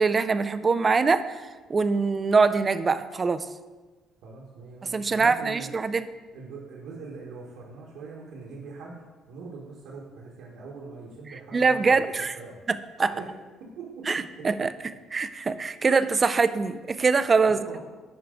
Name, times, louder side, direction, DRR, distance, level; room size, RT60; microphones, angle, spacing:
voice 1, 0.0-1.4 1.7-3.5 4.9-6.1 11.5-12.4 13.0-13.1 14.1-14.7 15.1-17.6, right 4 dB, 25° right, 12 dB, 0.3 m, -23 dB
voice 2, 4.2-5.7 6.3-12.6 13.1-13.3 13.6-14.5 17.4-17.8, right 4 dB, 80° right, -4 dB, 1.3 m, -42 dB
10.5 x 4.6 x 3.8 m, 1.3 s
cardioid pair, 160°, 0 cm